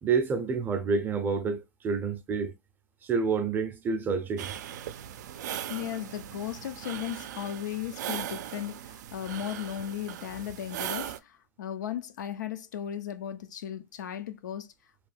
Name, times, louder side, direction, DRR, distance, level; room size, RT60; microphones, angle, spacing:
voice 1, 0.0-2.5 3.0-4.5, right 5 dB, 20° right, 0.5 m, -28 dB
sound 1, 4.4-11.2, right 11 dB, 70° right, 0.4 m, -39 dB
voice 2, 5.7-14.7, left 10 dB, 80° left, 0.6 m, -36 dB
3.0 x 2.2 x 3.2 m
hypercardioid pair, 135°, 10 cm